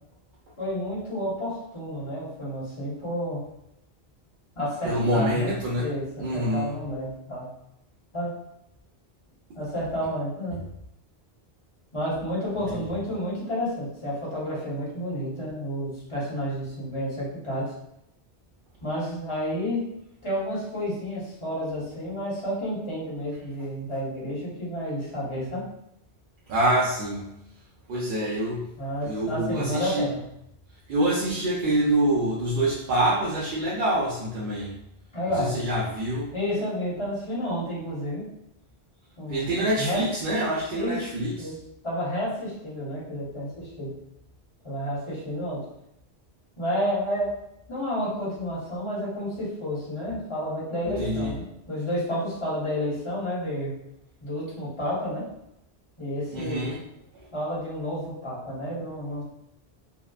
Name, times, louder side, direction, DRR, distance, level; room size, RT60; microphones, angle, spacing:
voice 1, 0.6-3.5 4.6-7.5 8.1-8.4 9.6-10.6 11.9-17.7 18.8-19.9 20.2-25.6 28.8-30.2 35.1-35.7 36.3-38.3 39.2-40.0 40.7-41.1 41.4-43.9 44.6-45.7 46.6-47.3 47.7-53.7 54.2-55.3 56.0-56.7 57.3-59.2, equal, 30° left, -7 dB, 0.9 m, -30 dB
voice 2, 4.8-5.8 6.2-6.8 12.7-12.8 26.5-27.2 27.9-28.6 29.0-30.0 30.9-34.7 35.4-36.3 39.3-41.3 51.0-51.3 56.3-56.8, right 1 dB, 60° right, -6 dB, 0.7 m, -26 dB
2.7 x 2.0 x 2.3 m, 0.82 s
omnidirectional pair, 1.1 m